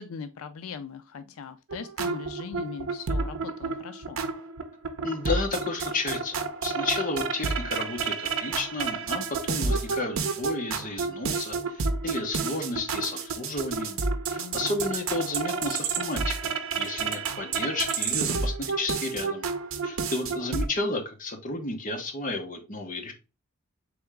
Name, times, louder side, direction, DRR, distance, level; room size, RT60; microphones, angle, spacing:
voice 1, 0.0-4.2 14.4-14.8, left 6 dB, 85° left, 0.4 m, -40 dB
sound 1, 1.7-20.7, right 4 dB, 70° right, 0.6 m, -30 dB
voice 2, 5.0-14.0 14.3-19.5 19.8-23.1, left 2 dB, 40° left, 0.9 m, -32 dB
3.8 x 3.5 x 3.4 m
head